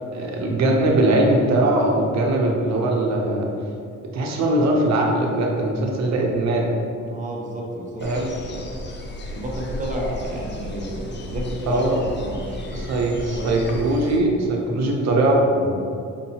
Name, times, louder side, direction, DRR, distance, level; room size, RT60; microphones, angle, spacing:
voice 1, 0.1-3.5 4.1-6.7 8.0-8.3 11.7-12.0 12.7-15.9, right 1 dB, 60° right, 0 dB, 0.8 m, -21 dB
voice 2, 7.0-8.8 9.3-11.8 12.1-13.6, right 1 dB, 25° right, -2 dB, 0.7 m, -32 dB
sound 1, 8.0-14.2, left 1 dB, 35° left, 0.5 m, -34 dB
5.1 x 2.7 x 2.8 m, 2.5 s
cardioid pair, 90°, 30 cm